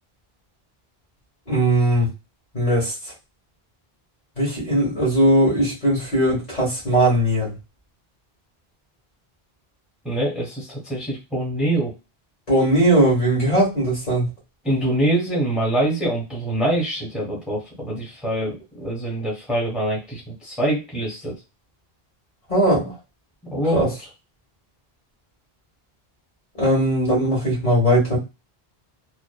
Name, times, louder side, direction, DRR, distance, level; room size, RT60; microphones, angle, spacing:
voice 1, 1.5-2.1 2.5-2.9 4.4-7.5 12.5-14.3 22.5-22.9 23.7-23.9 26.6-28.2, right 1 dB, 40° left, -4 dB, 1.6 m, -19 dB
voice 2, 10.0-11.9 14.6-21.3 23.5-23.9, right 1 dB, ahead, -3 dB, 0.9 m, -24 dB
3.0 x 2.1 x 2.3 m, 0.26 s
omnidirectional pair, 1.0 m